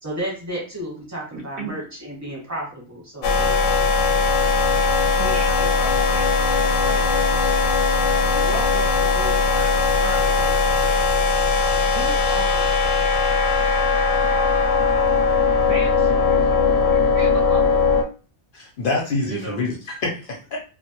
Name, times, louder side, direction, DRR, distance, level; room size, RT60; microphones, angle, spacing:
voice 1, 0.0-3.7, right 1 dB, 15° right, -3 dB, 0.9 m, -32 dB
voice 2, 1.3-1.8 5.2-7.5 8.2-11.0 11.9-13.1 15.6-17.6 19.2-19.6, right 3 dB, 60° right, 1 dB, 0.7 m, -35 dB
sound 1, 3.2-18.0, left 4 dB, 85° left, 0.9 m, -19 dB
voice 3, 18.5-20.6, left 3 dB, 60° left, 0 dB, 0.6 m, -26 dB
2.1 x 2.1 x 2.8 m, 0.35 s
omnidirectional pair, 1.2 m